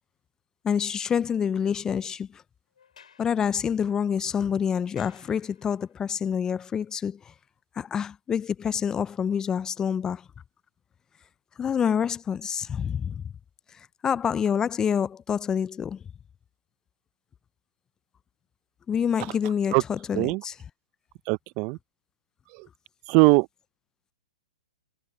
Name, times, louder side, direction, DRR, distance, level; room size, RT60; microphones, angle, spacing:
voice 1, 0.6-2.4 3.2-7.3 7.8-10.3 11.6-13.2 13.7-16.0 18.9-20.6, left 7 dB, 15° left, 0.4 m, -27 dB
Sliding door, 2.8-6.0, left 7 dB, 80° left, 7.4 m, -57 dB
voice 2, 21.3-21.8 22.5-22.7 23.1-23.5, right 28 dB, 40° right, 0.7 m, -21 dB
hypercardioid pair, 125°, 4 cm